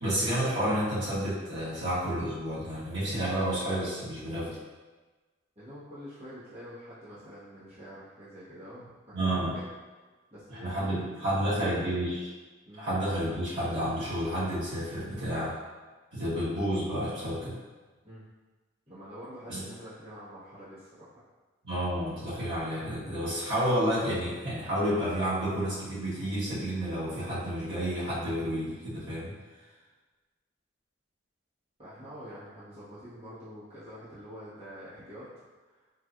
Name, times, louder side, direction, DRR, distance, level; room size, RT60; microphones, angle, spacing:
voice 1, 0.0-4.6 9.1-9.5 10.6-12.2 12.8-15.5 16.1-17.6 19.5-19.6 21.6-29.3, equal, 70° right, -11 dB, 1.4 m, -30 dB
voice 2, 5.5-9.7 10.3-12.0 12.7-12.9 18.0-18.2 18.9-21.1 31.8-35.3 35.6-35.8, equal, 30° right, -13 dB, 1.0 m, -46 dB
4.1 x 2.3 x 2.4 m, 1.3 s
head